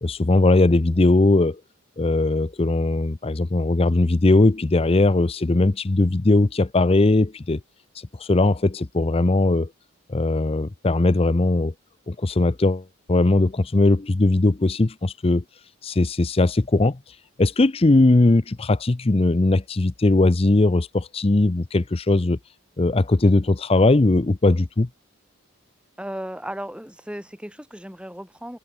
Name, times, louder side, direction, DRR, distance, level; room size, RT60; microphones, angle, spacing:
voice 1, 0.0-1.6 2.0-7.6 8.2-9.7 10.1-11.7 12.1-15.4 15.8-17.0 17.4-22.4 22.8-24.9, left 2 dB, 25° left, 0.5 m, -19 dB
voice 2, 26.0-28.6, equal, 5° right, 4.4 m, -35 dB
head